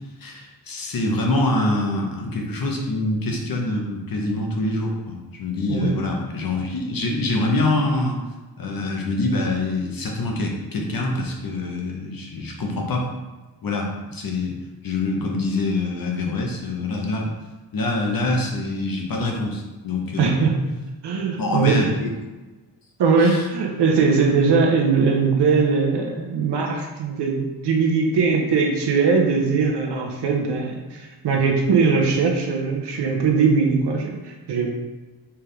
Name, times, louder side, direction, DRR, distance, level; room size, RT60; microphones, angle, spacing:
voice 1, 0.2-8.2 8.6-13.1 13.6-14.6 14.8-17.3 17.7-20.3 21.4-22.1 23.2-23.5, left 2 dB, 60° left, 0 dB, 1.0 m, -25 dB
voice 2, 20.2-20.7 21.0-21.9 23.0-34.7, right 5 dB, 80° right, 1 dB, 0.9 m, -20 dB
4.5 x 3.6 x 3.3 m, 1.2 s
wide cardioid pair, 100°, 40 cm